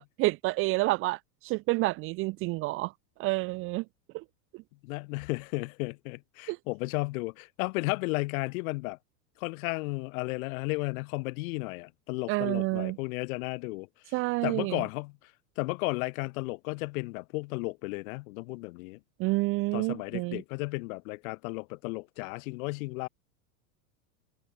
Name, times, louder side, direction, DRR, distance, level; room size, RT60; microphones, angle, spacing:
voice 1, 0.0-2.9 3.2-3.8 4.1-4.2 4.5-4.6 6.5-6.6 12.3-13.0 14.1-14.8 19.2-20.4, right 22 dB, 30° right, 0.4 m, -29 dB
voice 2, 4.8-9.0 9.4-13.9 14.4-15.2 15.6-19.0 19.7-23.1, left 25 dB, 60° left, 1.3 m, -34 dB
supercardioid pair, 125°, 46 cm